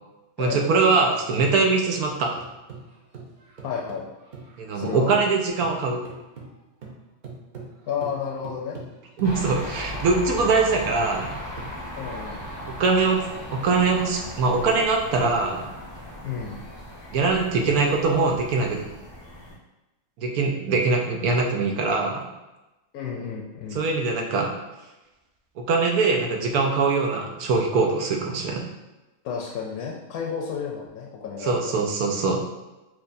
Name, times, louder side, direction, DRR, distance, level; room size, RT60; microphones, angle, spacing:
voice 1, 0.4-2.3 4.6-6.0 9.2-11.4 12.7-13.2 13.5-15.7 17.1-18.8 20.2-22.2 23.7-24.5 25.6-28.6 31.4-32.4, right 4 dB, 90° right, 2 dB, 1.1 m, -22 dB
sound 1, 1.9-5.3 5.6-12.3, right 4 dB, 55° right, 0.5 m, -43 dB
voice 2, 3.6-4.1 4.7-5.1 7.9-8.8 12.0-12.4 16.2-16.6 22.9-23.9 29.2-31.7, left 6 dB, 85° left, -1 dB, 1.1 m, -31 dB
sound 2, 9.2-19.5, left 1 dB, 35° left, 0.4 m, -37 dB
4.7 x 2.6 x 2.5 m, 1.0 s
omnidirectional pair, 1.5 m